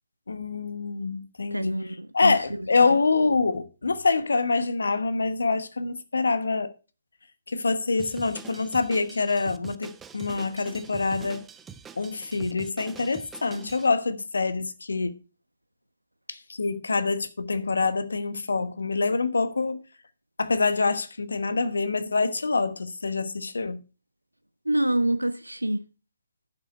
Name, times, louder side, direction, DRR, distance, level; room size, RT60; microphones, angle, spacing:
voice 1, 0.3-6.7 7.5-11.5 12.0-15.2 16.3-19.8 20.4-23.8, left 4 dB, 70° left, 1.1 m, -26 dB
voice 2, 1.5-2.6 24.6-25.8, right 1 dB, 90° right, 1.1 m, -26 dB
Drum kit, 8.0-13.9, right 6 dB, 10° right, 0.6 m, -44 dB
11.0 x 6.5 x 4.4 m
figure-of-eight pair, 135°, 0 cm